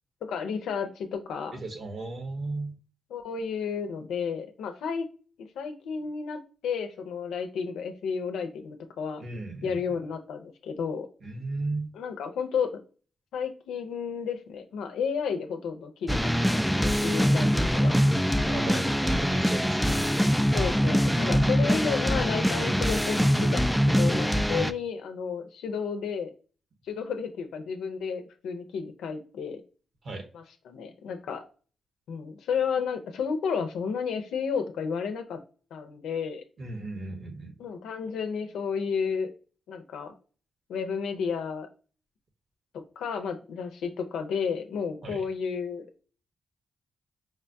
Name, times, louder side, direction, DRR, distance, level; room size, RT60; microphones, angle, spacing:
voice 1, 0.3-1.6 3.1-5.1 5.6-9.2 9.6-11.1 11.9-12.7 13.3-18.0 18.7-18.9 20.5-26.3 26.8-29.6 30.3-31.4 32.1-35.4 35.7-36.4 37.6-39.3 39.7-40.1 40.7-41.7 42.7-45.9, left 6 dB, 85° left, 6 dB, 0.6 m, -32 dB
voice 2, 1.5-2.7 9.2-10.0 11.2-12.0 18.5-20.2 24.5-24.7 30.0-30.2 36.6-37.5 45.0-45.2, right 2 dB, 60° right, 4 dB, 1.0 m, -35 dB
sound 1, 16.1-24.7, equal, ahead, 0.3 m, -24 dB
4.8 x 2.2 x 2.6 m, 0.37 s
supercardioid pair, 50°, 0 cm